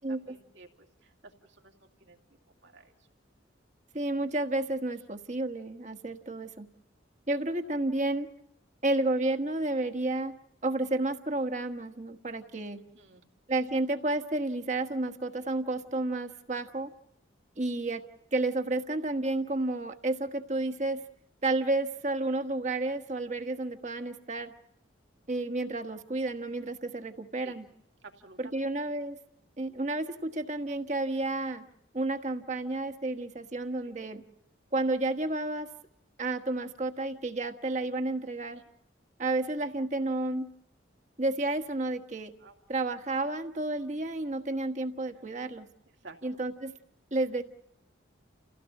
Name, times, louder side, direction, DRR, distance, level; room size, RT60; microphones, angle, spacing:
voice 1, 0.1-3.1 12.9-13.2 27.4-27.5 28.0-28.7 33.8-34.0 38.5-38.6 39.6-39.7 42.4-42.6 45.9-46.2, right 3 dB, 70° right, 1 dB, 2.7 m, -53 dB
voice 2, 3.9-6.7 7.3-8.3 8.8-12.8 13.5-16.9 17.6-18.0 18.3-21.0 21.4-24.5 25.3-27.6 28.4-29.2 29.6-31.7 31.9-34.2 34.7-35.7 36.2-38.6 39.2-40.5 41.2-42.3 42.7-45.7 46.2-46.8 47.1-47.4, right 2 dB, 40° right, 7 dB, 1.4 m, -31 dB
30.0 x 16.5 x 7.2 m, 0.78 s
head